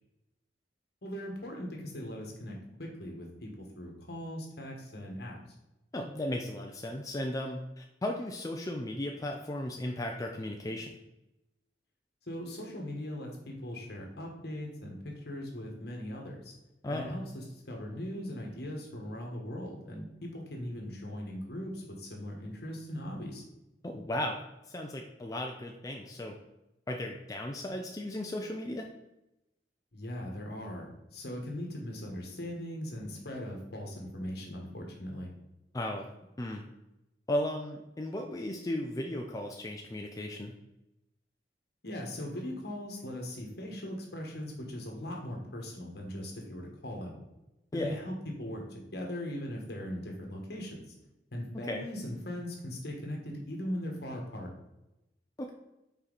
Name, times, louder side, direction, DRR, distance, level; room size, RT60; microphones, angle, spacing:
voice 1, 1.0-5.3 12.3-16.5 16.9-23.4 29.9-35.3 41.8-47.2 47.7-50.8 51.3-54.5, left 1 dB, 60° left, 0 dB, 1.5 m, -39 dB
voice 2, 5.9-11.0 16.8-17.2 23.8-24.4 24.7-26.3 26.9-28.9 35.7-36.1 36.4-36.7 37.3-40.5 47.7-48.0 51.7-51.9 55.4-55.5, left 1 dB, 20° left, 2 dB, 0.4 m, -35 dB
5.6 x 4.3 x 4.0 m, 0.93 s
head